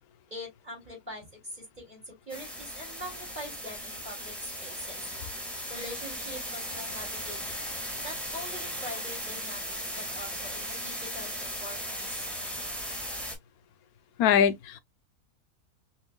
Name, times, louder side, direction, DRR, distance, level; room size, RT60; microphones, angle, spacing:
voice 1, 0.3-5.0 5.7-7.4 8.0-12.3, left 1 dB, 30° right, 2.4 m, -43 dB
sound 1, 2.3-13.4, equal, ahead, 1.6 m, -37 dB
voice 2, 14.2-14.8, left 8 dB, 80° left, 1.1 m, -22 dB
5.6 x 2.9 x 2.2 m
omnidirectional pair, 1.6 m